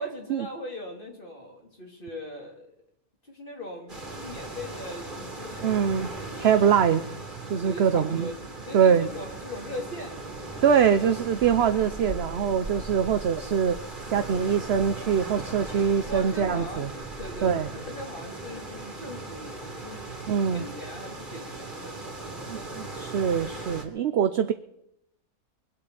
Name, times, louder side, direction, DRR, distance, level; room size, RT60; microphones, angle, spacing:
voice 1, 0.0-2.8 3.3-5.8 6.3-6.6 7.6-8.4 8.7-10.6 16.1-20.1 20.5-23.1, equal, 35° left, 0 dB, 3.5 m, -40 dB
sound 1, 3.9-23.8, right 2 dB, 30° right, 3.2 m, -38 dB
voice 2, 5.6-6.1 6.4-7.0 7.5-8.3 8.7-9.1 10.6-13.8 14.1-16.9 17.4-17.7 20.3-20.6 22.5-24.5, right 7 dB, 55° right, 10 dB, 0.8 m, -23 dB
23.0 x 8.4 x 6.9 m, 0.79 s
omnidirectional pair, 1.6 m